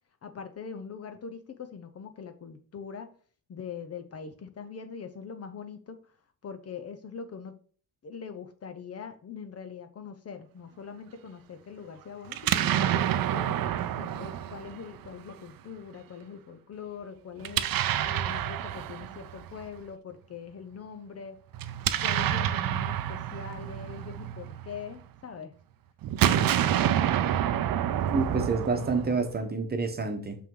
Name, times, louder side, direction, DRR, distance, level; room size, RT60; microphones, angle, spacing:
voice 1, 0.2-3.1 3.5-6.0 6.4-7.6 8.0-13.6 14.0-17.7 18.0-21.4 22.0-25.5, left 6 dB, 40° left, 0.8 m, -42 dB
Explosion, 12.3-15.3 17.4-19.6 21.5-25.0 26.0-29.4, right 11 dB, 65° right, 0.6 m, -28 dB
voice 2, 28.1-30.4, right 4 dB, 25° right, 1.1 m, -28 dB
6.1 x 5.6 x 3.8 m
cardioid pair, 135°, 38 cm